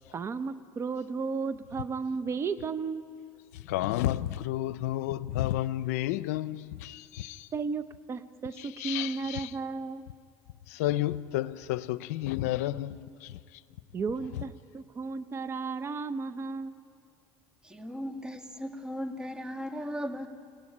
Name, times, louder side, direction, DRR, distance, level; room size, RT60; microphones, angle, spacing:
voice 1, 0.1-3.0 7.5-10.0 13.9-16.8, right 4 dB, 35° right, 0.8 m, -34 dB
voice 2, 3.5-7.5 8.6-9.5 10.7-13.4, left 14 dB, 90° left, 0.6 m, -31 dB
voice 3, 17.6-20.3, equal, 10° right, 2.0 m, -37 dB
23.5 x 17.0 x 9.9 m
supercardioid pair, 100°, 8 cm